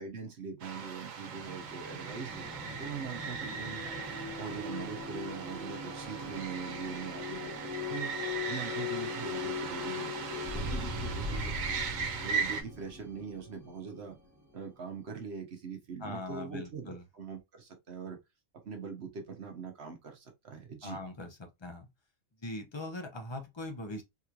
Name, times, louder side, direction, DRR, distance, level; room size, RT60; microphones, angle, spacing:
voice 1, 0.0-8.1 8.5-11.8 12.2-14.2 14.5-18.2 18.6-21.0, right 5 dB, 60° right, 1.0 m, -42 dB
sound 1, 0.6-12.6, right 5 dB, 90° right, 1.2 m, -39 dB
sound 2, 1.2-14.7, left 3 dB, 15° right, 0.7 m, -40 dB
voice 2, 16.0-17.0 20.8-21.9 22.4-24.0, left 2 dB, 25° left, 0.7 m, -41 dB
3.7 x 3.0 x 2.4 m
omnidirectional pair, 1.4 m